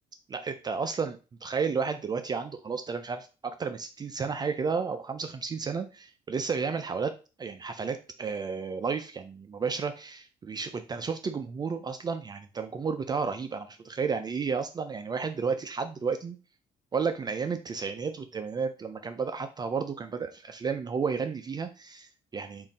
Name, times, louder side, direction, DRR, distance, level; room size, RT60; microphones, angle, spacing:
voice 1, 0.3-7.1 7.4-16.4 16.9-22.7, right 5 dB, 30° right, 8 dB, 0.4 m, -32 dB
3.7 x 2.5 x 3.9 m, 0.32 s
cardioid pair, 105°, 14 cm